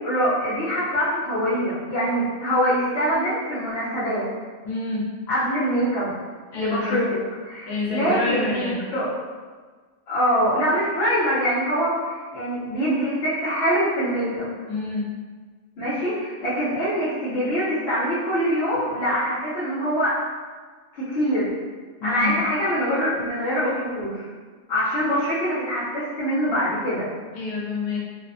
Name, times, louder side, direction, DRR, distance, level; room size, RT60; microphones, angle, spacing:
voice 1, 0.0-4.3 5.3-6.1 6.5-7.2 7.5-9.1 10.1-14.5 15.8-20.1 20.9-21.5 22.0-24.3 24.7-27.1, equal, 55° left, -12 dB, 0.8 m, -24 dB
voice 2, 4.6-5.1 6.5-7.0 7.6-8.9 14.7-15.1 22.0-22.4 27.3-28.0, left 3 dB, 80° left, -4 dB, 1.0 m, -27 dB
2.6 x 2.1 x 2.5 m, 1.4 s
omnidirectional pair, 1.5 m